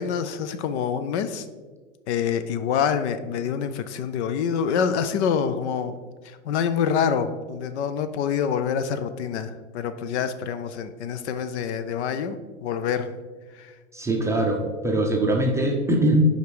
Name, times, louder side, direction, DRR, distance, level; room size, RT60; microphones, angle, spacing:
voice 1, 0.0-1.5 2.1-5.9 6.2-12.4 12.6-13.1 13.5-13.7, left 7 dB, 55° left, 11 dB, 0.6 m, -26 dB
voice 2, 13.9-16.2, right 1 dB, 5° right, 0 dB, 0.5 m, -22 dB
5.1 x 5.1 x 4.7 m, 1.4 s
hypercardioid pair, 115°, 41 cm